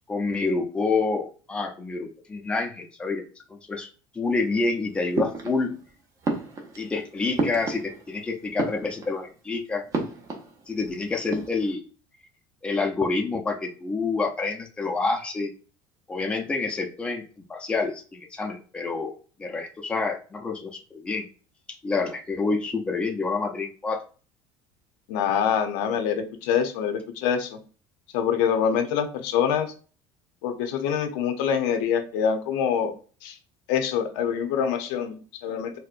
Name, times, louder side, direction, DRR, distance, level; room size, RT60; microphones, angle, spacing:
voice 1, 0.1-3.2 3.5-3.9 4.1-5.7 6.8-9.8 10.7-11.8 12.6-15.5 16.1-17.2 17.5-19.1 19.4-21.2 21.8-24.0, left 3 dB, 10° left, 3 dB, 0.4 m, -28 dB
sound 1, 5.1-5.9 6.2-8.2 8.5-9.3 9.9-10.9 11.2-11.7, right 3 dB, 30° right, 0.7 m, -31 dB
voice 2, 25.1-27.6 28.1-29.7 30.4-32.9 33.2-33.4 33.7-35.8, left 8 dB, 80° left, 6 dB, 0.6 m, -25 dB
4.2 x 2.1 x 2.4 m, 0.38 s
cardioid pair, 140°, 11 cm